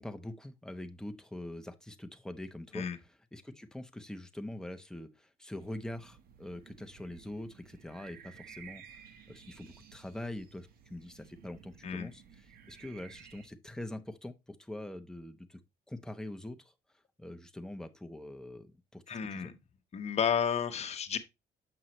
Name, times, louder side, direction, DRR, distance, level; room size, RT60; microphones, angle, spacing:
voice 1, 0.0-2.8 3.3-8.8 9.3-15.6 15.9-16.7 17.2-19.5, left 1 dB, 5° left, 0.7 m, -44 dB
sound 1, 5.6-13.5, right 8 dB, 60° right, 1.1 m, -55 dB
voice 2, 19.1-19.5 19.9-21.2, left 7 dB, 40° left, 1.0 m, -32 dB
7.8 x 5.5 x 3.0 m
cardioid pair, 110°, 17 cm